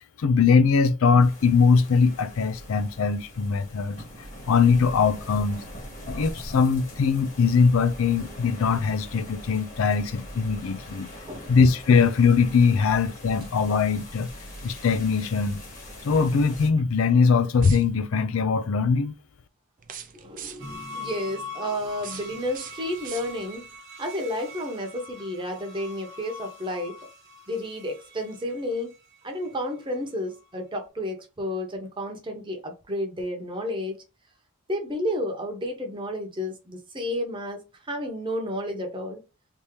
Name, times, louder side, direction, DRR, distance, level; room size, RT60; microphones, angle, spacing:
voice 1, 0.2-4.0 4.5-5.6 6.1-11.1 11.5-14.3 14.6-15.6 16.0-19.1, left 5 dB, 70° left, 0.4 m, -21 dB
sound 1, 1.2-16.7, equal, 35° left, 1.4 m, -42 dB
voice 2, 11.3-11.6 20.1-23.6 24.0-27.0 27.5-28.9 29.2-34.0 34.7-39.2, left 1 dB, 25° right, 0.9 m, -31 dB
sound 2, 17.5-18.2 19.8-20.8 21.8-23.7, right 9 dB, 40° right, 0.5 m, -42 dB
sound 3, 20.6-29.9 30.4-30.5, left 2 dB, 60° right, 1.2 m, -43 dB
3.5 x 2.8 x 3.1 m
head